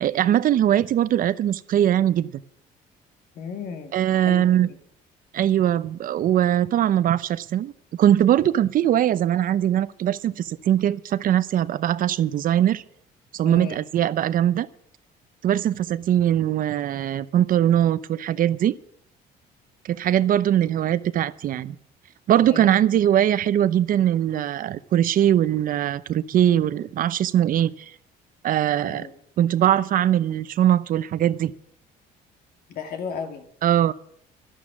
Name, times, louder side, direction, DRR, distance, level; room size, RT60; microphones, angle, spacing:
voice 1, 0.0-2.4 3.9-4.7 5.3-7.7 8.0-12.8 13.3-14.7 15.4-18.8 19.8-21.8 22.3-27.9 28.4-29.1 29.4-31.5 33.6-33.9, right 11 dB, 55° right, 16 dB, 0.7 m, -21 dB
voice 2, 3.4-4.7 13.4-13.8 22.5-22.8 28.8-29.1 32.7-33.4, left 6 dB, 65° left, 6 dB, 2.3 m, -34 dB
12.0 x 11.5 x 7.2 m, 0.65 s
cardioid pair, 110°, 17 cm